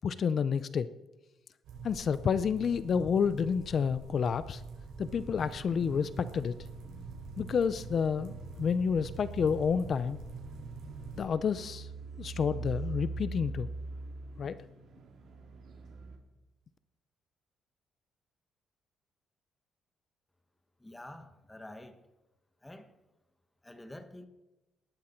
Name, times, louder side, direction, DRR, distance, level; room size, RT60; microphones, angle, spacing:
voice 1, 0.0-0.9 1.8-4.6 5.0-6.5 7.4-10.2 11.1-11.9 12.2-13.7 14.4-14.6, left 6 dB, 40° left, 15 dB, 0.5 m, -29 dB
sound 1, 1.6-11.3, right 3 dB, 80° right, 5.2 m, -45 dB
sound 2, 5.1-16.2, right 4 dB, 55° right, 2.2 m, -44 dB
voice 2, 20.8-22.0 22.6-22.9 23.6-24.3, left 1 dB, 10° left, 8 dB, 1.3 m, -47 dB
18.0 x 12.5 x 4.4 m, 1.0 s
cardioid pair, 155°, 0 cm